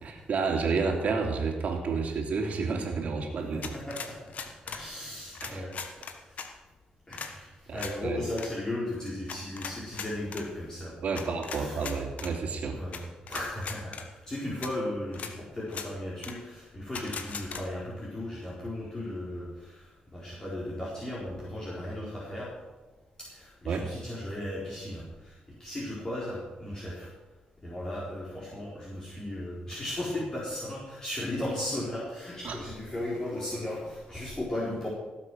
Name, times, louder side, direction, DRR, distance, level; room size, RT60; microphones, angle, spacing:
voice 1, 0.0-3.7 5.4-5.6 7.7-8.2 11.0-12.7 23.7-23.8 32.4-32.5, right 4 dB, 60° right, 2 dB, 3.0 m, -30 dB
voice 2, 3.5-4.2 4.6-5.7 6.2-6.4 7.1-11.8 12.7-13.0 13.3-22.5 23.2-27.1 27.6-34.9, left 1 dB, 25° left, -7 dB, 4.4 m, -36 dB
sound 1, 3.6-4.8 5.3-6.5 7.1-7.3 7.8-7.9 8.3-8.5 9.3-10.4 11.1-12.3 12.9-13.0 13.3-14.0 14.6-14.7 15.1-15.3 15.7-15.9 16.2-16.3 16.9-17.6, left 6 dB, 60° left, 1.4 m, -38 dB
17.0 x 7.9 x 6.3 m, 1.2 s
cardioid pair, 95°, 3 cm